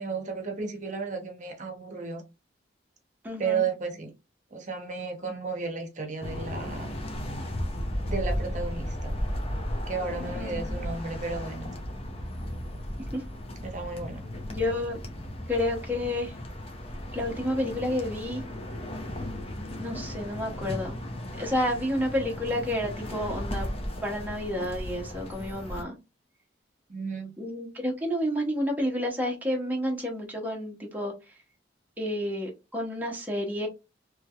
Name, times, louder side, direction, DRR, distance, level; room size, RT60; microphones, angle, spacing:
voice 1, 0.0-2.2 3.4-4.1 4.5-6.9 8.0-9.2 9.9-11.7 13.6-14.2 26.9-27.3, right 5 dB, 40° right, 0.8 m, -33 dB
voice 2, 3.2-3.7 10.4-10.9 13.1-13.2 14.5-15.0 15.5-16.3 17.1-18.4 19.8-21.1 21.4-23.7 24.0-26.0 27.4-31.1 32.0-33.7, left 1 dB, 10° right, 0.7 m, -30 dB
sound 1, 6.2-25.8, left 1 dB, 30° left, 0.7 m, -35 dB
3.2 x 3.1 x 2.3 m
head